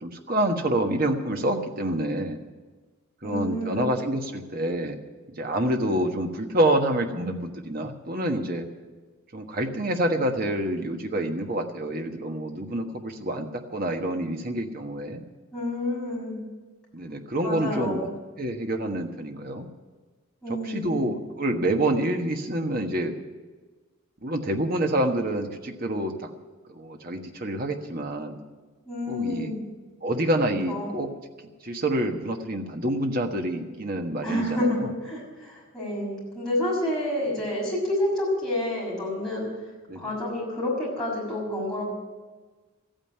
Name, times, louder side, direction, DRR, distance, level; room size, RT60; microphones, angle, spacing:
voice 1, 0.0-2.4 3.2-5.0 5.4-8.7 9.3-15.2 16.9-18.1 18.4-19.7 20.5-23.2 24.2-26.3 26.7-28.4 29.1-29.5 30.0-31.1 31.6-34.9 39.9-40.0, right 1 dB, 45° right, 4 dB, 1.3 m, -27 dB
voice 2, 3.2-3.8 15.5-16.4 17.4-18.1 20.4-21.1 28.8-29.6 30.7-30.9 34.2-39.5 39.9-41.9, left 1 dB, 5° left, -6 dB, 6.3 m, -29 dB
14.0 x 9.1 x 9.9 m, 1.3 s
head